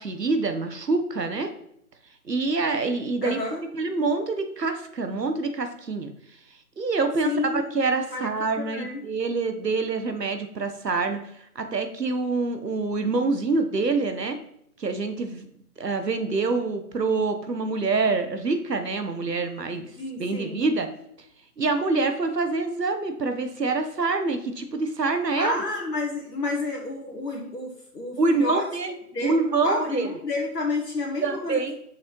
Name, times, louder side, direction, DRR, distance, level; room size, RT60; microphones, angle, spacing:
voice 1, 0.0-1.5 2.2-3.4 3.7-6.1 6.8-11.2 11.5-14.4 14.8-15.5 15.8-19.9 20.2-20.9 21.6-25.6 28.2-28.9 29.2-30.1 31.2-31.8, right 3 dB, 85° right, 7 dB, 1.2 m, -26 dB
voice 2, 3.2-3.6 7.2-7.7 8.1-8.3 8.6-9.0 20.0-20.6 25.3-28.6 29.1-31.8, left 3 dB, 90° left, -2 dB, 1.5 m, -30 dB
6.4 x 6.3 x 3.1 m, 0.72 s
figure-of-eight pair, 145°, 48 cm